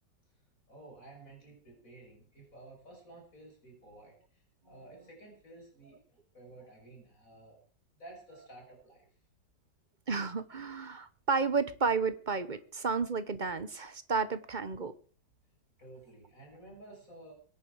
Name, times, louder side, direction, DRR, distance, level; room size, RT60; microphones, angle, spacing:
voice 1, 0.7-7.6 7.9-9.1 15.8-17.3, right 2 dB, 50° left, 6.4 m, -53 dB
voice 2, 10.1-14.9, right 4 dB, 35° right, 0.8 m, -32 dB
23.0 x 10.5 x 4.9 m
omnidirectional pair, 1.9 m